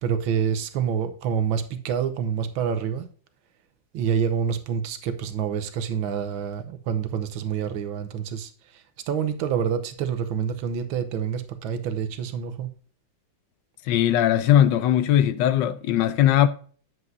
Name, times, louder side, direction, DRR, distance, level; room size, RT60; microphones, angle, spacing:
voice 1, 0.0-3.1 3.9-12.7, right 7 dB, 85° right, 1.7 m, -27 dB
voice 2, 13.9-16.5, left 11 dB, 75° left, 1.2 m, -19 dB
9.2 x 8.0 x 2.6 m
omnidirectional pair, 2.2 m